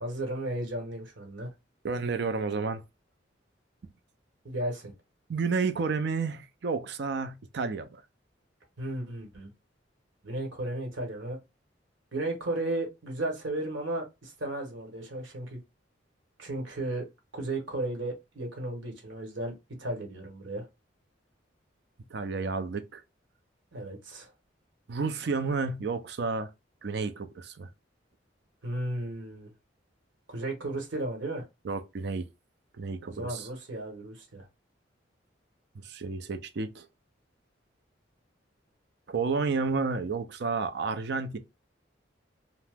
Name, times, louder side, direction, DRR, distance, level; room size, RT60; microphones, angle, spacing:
voice 1, 0.0-1.5 4.4-4.9 8.8-9.5 10.2-11.4 12.1-15.6 16.4-17.1 17.3-20.7 23.7-24.3 28.6-29.5 30.3-31.5 33.0-34.5, right 1 dB, 80° right, 1.1 m, -34 dB
voice 2, 1.8-2.8 5.3-8.0 22.1-23.0 24.9-26.5 26.8-27.7 31.6-32.3 32.8-33.5 35.7-36.9 39.1-41.4, right 4 dB, 60° right, 0.4 m, -31 dB
2.8 x 2.0 x 3.4 m
head